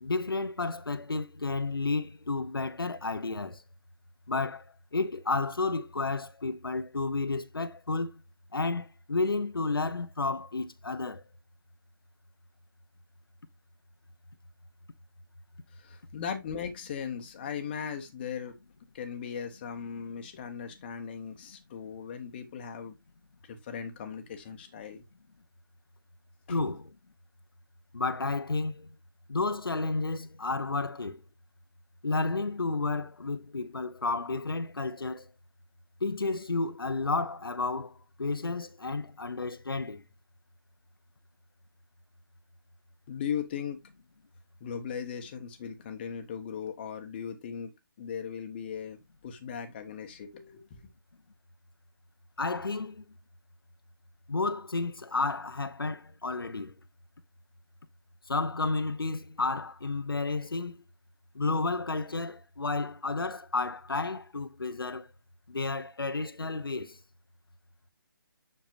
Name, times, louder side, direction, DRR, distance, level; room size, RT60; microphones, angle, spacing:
voice 1, 0.0-3.6 4.3-8.1 8.5-11.2 26.5-26.9 27.9-28.9 29.3-31.2 32.0-35.3 36.0-37.9 38.2-40.0 52.4-53.0 54.3-56.7 58.3-60.8 61.3-65.1 65.5-67.0, left 3 dB, 80° left, 0.8 m, -31 dB
voice 2, 15.7-18.5 18.9-22.9 23.4-25.0 26.5-26.6 43.1-43.8 44.6-47.7 48.0-49.0 49.2-50.8, left 7 dB, 25° left, 1.1 m, -38 dB
7.3 x 6.6 x 2.6 m
figure-of-eight pair, 150°, 12 cm